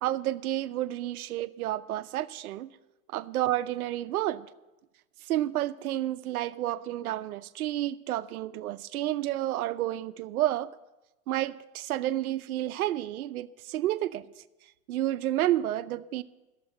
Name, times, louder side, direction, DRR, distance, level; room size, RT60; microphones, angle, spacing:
voice 1, 0.0-2.7 3.1-4.5 5.2-10.7 11.3-14.4 14.9-16.2, right 14 dB, 80° right, 13 dB, 0.7 m, -30 dB
11.0 x 7.5 x 8.6 m, 1.0 s
supercardioid pair, 140°, 42 cm